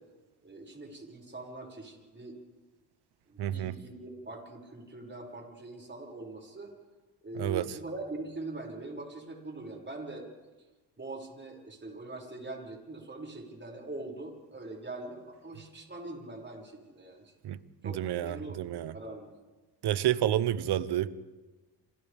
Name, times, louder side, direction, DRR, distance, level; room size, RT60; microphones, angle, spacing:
voice 1, 0.4-2.4 3.3-6.7 7.2-10.3 11.0-17.3 17.8-18.7 18.9-19.4, right 2 dB, 30° right, 0 dB, 6.4 m, -42 dB
voice 2, 3.4-3.7 7.4-7.6 17.4-17.6 17.8-18.9 19.8-21.1, right 12 dB, 75° right, 15 dB, 1.0 m, -29 dB
28.0 x 26.5 x 3.6 m, 1.2 s
cardioid pair, 70°, 40 cm